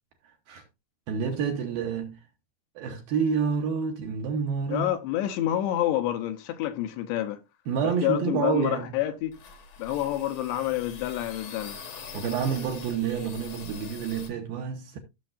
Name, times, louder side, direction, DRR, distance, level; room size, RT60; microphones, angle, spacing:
voice 1, 1.1-2.2 2.8-4.9 7.7-8.9 12.1-15.0, right 6 dB, 70° right, 2.4 m, -28 dB
voice 2, 4.7-7.4 7.8-9.3 9.8-11.8, left 13 dB, 75° left, 3.0 m, -28 dB
sound 1, 9.3-14.3, left 5 dB, 55° left, 1.8 m, -43 dB
15.0 x 6.8 x 2.6 m
omnidirectional pair, 5.3 m